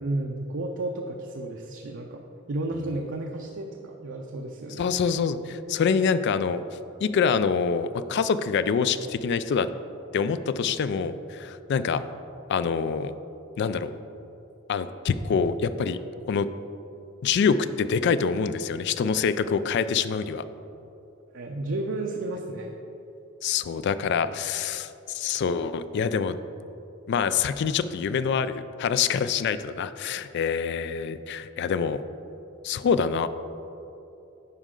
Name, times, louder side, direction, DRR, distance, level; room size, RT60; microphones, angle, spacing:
voice 1, 0.0-4.9 21.3-22.8, right 2 dB, 65° right, 1 dB, 0.5 m, -32 dB
voice 2, 4.8-6.6 7.0-9.7 10.1-12.0 12.5-13.1 13.6-13.9 14.7-16.0 16.3-16.5 17.2-20.4 23.4-26.4 27.1-32.0 32.6-33.3, left 6 dB, 55° left, 13 dB, 0.3 m, -25 dB
9.6 x 5.4 x 3.8 m, 2.9 s
head